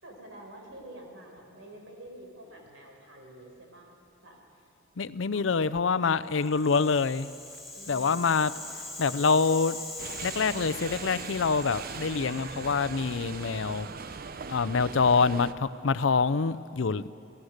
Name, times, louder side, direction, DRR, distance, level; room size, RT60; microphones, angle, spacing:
voice 1, 0.0-3.9 4.2-4.4 5.3-5.4 7.7-8.7, right 1 dB, 85° right, 1 dB, 4.6 m, -48 dB
voice 2, 5.0-7.3 7.9-8.5 9.0-9.8 10.2-13.9 14.5-17.1, left 5 dB, 75° left, 16 dB, 0.6 m, -26 dB
Rattle (instrument), 6.3-14.5, left 2 dB, ahead, 4.3 m, -43 dB
sound 1, 10.0-15.5, right 5 dB, 50° right, 0.6 m, -40 dB
28.0 x 17.0 x 6.6 m, 2.6 s
head